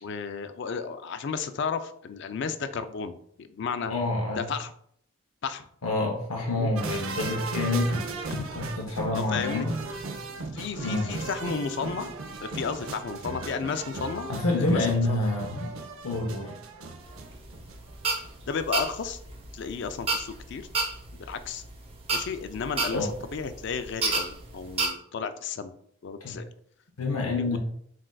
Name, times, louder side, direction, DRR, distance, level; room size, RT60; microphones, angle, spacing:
voice 1, 0.0-3.9 4.4-4.7 5.4-5.7 6.5-6.7 8.3-8.5 9.1-9.7 10.5-12.1 12.4-14.3 14.6-15.2 18.5-19.2 19.5-20.7 21.1-21.6 22.1-25.7 26.0-26.5 27.1-27.6, left 5 dB, 55° left, 10 dB, 0.3 m, -33 dB
voice 2, 3.9-4.5 5.8-8.2 8.6-9.8 10.8-11.1 14.3-15.7 16.0-16.5 22.9-23.1 26.2-26.4 27.0-27.6, left 2 dB, 85° left, 0 dB, 0.7 m, -27 dB
sound 1, 6.8-17.9 18.2-18.3, right 3 dB, 75° right, 0.6 m, -37 dB
sound 2, 17.1-24.9, right 3 dB, 25° right, 0.6 m, -31 dB
7.4 x 2.5 x 2.2 m, 0.67 s
head